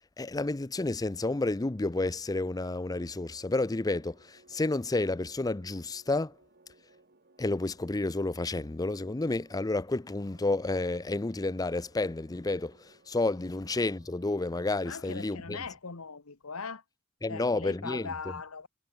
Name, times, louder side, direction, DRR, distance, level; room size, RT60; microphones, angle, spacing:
voice 1, 0.2-6.3 7.4-15.6 17.2-18.1, left 2 dB, 15° left, 0.5 m, -30 dB
sound 1, 2.6-15.4, right 2 dB, 45° right, 3.0 m, -62 dB
voice 2, 14.8-16.8 17.3-18.7, left 5 dB, 80° left, 1.4 m, -40 dB
head